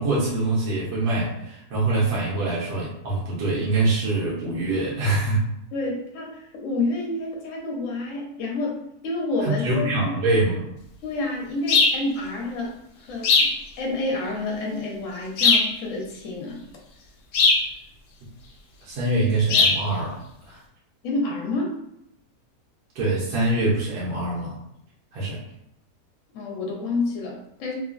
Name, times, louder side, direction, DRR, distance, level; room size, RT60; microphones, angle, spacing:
voice 1, 0.0-5.4 9.4-10.7 18.8-20.2 20.5-20.6 22.9-24.6 25.1-25.4, right 2 dB, 85° right, -6 dB, 1.3 m, -24 dB
voice 2, 5.7-9.8 11.0-12.8 13.1-16.6 21.0-21.8 26.3-27.7, left 2 dB, 60° left, -1 dB, 1.0 m, -29 dB
sound 1, 11.7-12.0 13.2-13.6 15.4-15.7 17.3-17.7 19.5-19.8, left 4 dB, 85° left, 0.6 m, -18 dB
3.0 x 2.2 x 2.4 m, 0.80 s
omnidirectional pair, 1.7 m